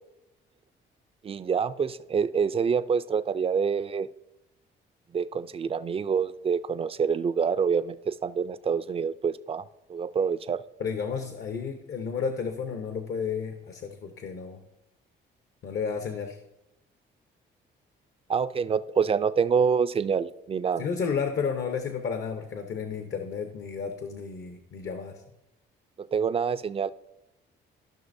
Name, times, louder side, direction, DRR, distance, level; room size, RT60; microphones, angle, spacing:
voice 1, 1.2-4.1 5.1-9.6 9.9-10.6 18.3-20.8 26.0-26.9, right 6 dB, 30° right, 15 dB, 0.3 m, -26 dB
voice 2, 10.8-14.6 15.6-16.4 20.8-25.2, left 6 dB, 60° left, 6 dB, 0.8 m, -32 dB
14.5 x 5.8 x 2.6 m, 0.92 s
cardioid pair, 90°, 20 cm